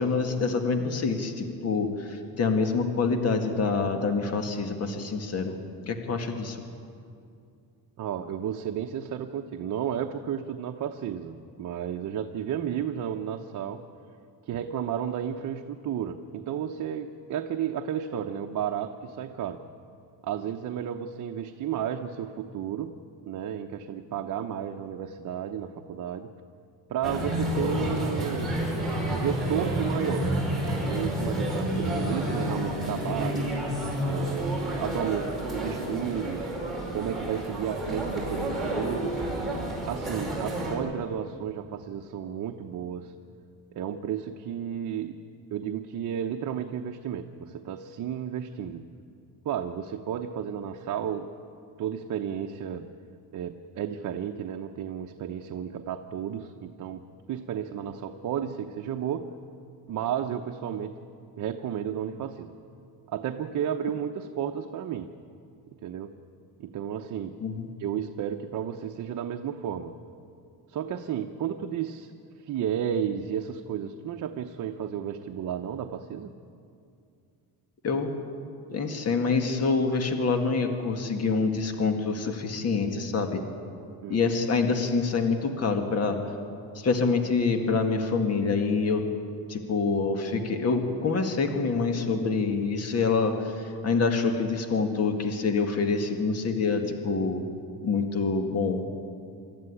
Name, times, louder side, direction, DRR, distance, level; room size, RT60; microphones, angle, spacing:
voice 1, 0.0-5.6 5.9-6.6 67.4-67.7 77.8-78.1 78.7-83.4 84.1-86.2 86.8-89.0 89.5-97.4 97.8-98.9, left 4 dB, 40° left, 6 dB, 1.9 m, -26 dB
voice 2, 8.0-13.8 14.4-19.6 20.2-23.0 23.2-26.3 26.9-28.6 29.1-30.3 30.8-33.5 34.0-36.5 36.9-39.2 39.9-43.1 43.7-45.2 45.5-48.8 49.4-51.3 51.8-52.9 53.3-59.3 59.9-61.0 61.4-62.6 63.1-65.1 65.8-66.1 66.6-67.4 67.8-69.9 70.7-72.1 72.5-76.3 84.0-84.2, right 9 dB, 50° right, 4 dB, 0.9 m, -32 dB
sound 1, 27.0-40.8, right 1 dB, ahead, 5.3 m, -30 dB
24.0 x 14.0 x 9.9 m, 2.4 s
cardioid pair, 160°, 38 cm